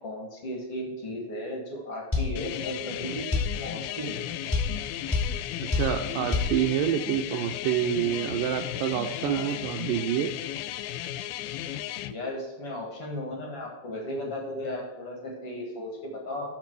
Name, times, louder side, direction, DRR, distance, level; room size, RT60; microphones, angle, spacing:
voice 1, 0.0-3.3 3.6-4.3 9.2-9.6 12.1-16.5, left 1 dB, 50° left, 0 dB, 2.2 m, -35 dB
sound 1, 2.1-2.3 3.3-3.5 4.5-4.7 5.1-5.3 5.7-5.9 6.3-6.5, left 3 dB, 5° left, 2.3 m, -24 dB
sound 2, 2.4-12.1, left 12 dB, 85° left, 2.4 m, -35 dB
voice 2, 5.7-10.3, right 10 dB, 80° right, 5 dB, 2.0 m, -27 dB
13.5 x 5.3 x 4.6 m, 1.2 s
omnidirectional pair, 4.3 m